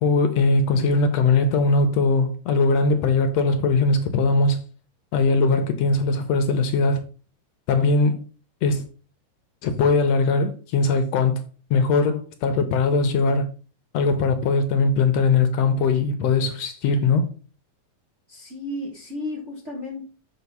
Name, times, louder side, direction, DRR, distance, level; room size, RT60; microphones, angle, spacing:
voice 1, 0.0-4.6 5.1-7.0 7.7-8.2 8.6-8.8 9.6-11.4 11.7-13.5 13.9-17.3, left 3 dB, 70° left, 1.9 m, -20 dB
voice 2, 18.3-20.0, left 1 dB, 40° right, 1.1 m, -33 dB
7.0 x 4.0 x 5.4 m
omnidirectional pair, 3.3 m